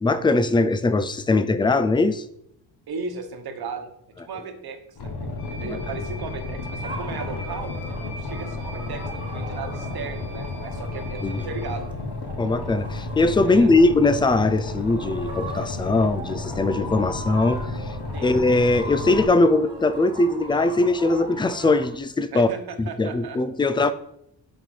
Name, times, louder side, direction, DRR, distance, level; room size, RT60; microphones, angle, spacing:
voice 1, 0.0-2.2 5.7-5.8 11.2-11.4 12.4-17.6 18.2-22.5 22.8-23.9, left 2 dB, 10° left, 0.3 m, -20 dB
voice 2, 2.9-3.9 4.2-11.8 13.4-13.7 18.1-18.3 22.3-23.4 23.9-24.0, right 5 dB, 55° right, 1.3 m, -36 dB
Boat Water vehicle, 5.0-19.2, left 3 dB, 60° left, 1.6 m, -33 dB
sound 1, 5.4-11.7, right 1 dB, 30° left, 2.1 m, -44 dB
sound 2, 6.8-22.0, right 1 dB, 10° right, 1.5 m, -40 dB
8.8 x 4.2 x 5.5 m
cardioid pair, 130°, 43 cm